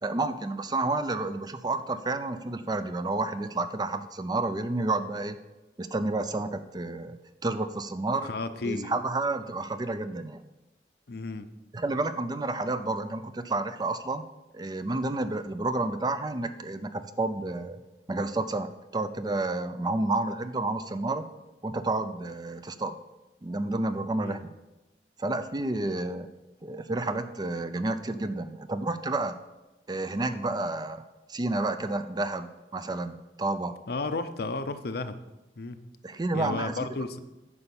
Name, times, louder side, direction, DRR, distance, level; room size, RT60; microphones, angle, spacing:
voice 1, 0.0-5.4 5.8-7.2 7.4-8.3 8.6-10.4 11.7-14.2 14.5-17.8 18.1-21.2 21.6-23.0 23.4-24.4 25.2-26.3 26.6-29.4 29.9-31.0 31.3-33.8 36.0-36.7, right 2 dB, 25° right, 10 dB, 0.4 m, -30 dB
voice 2, 8.2-9.0 11.1-11.5 24.2-24.4 33.9-35.2 35.6-35.8 36.3-37.2, left 3 dB, 60° left, 10 dB, 0.6 m, -33 dB
9.9 x 5.5 x 7.0 m, 1.0 s
head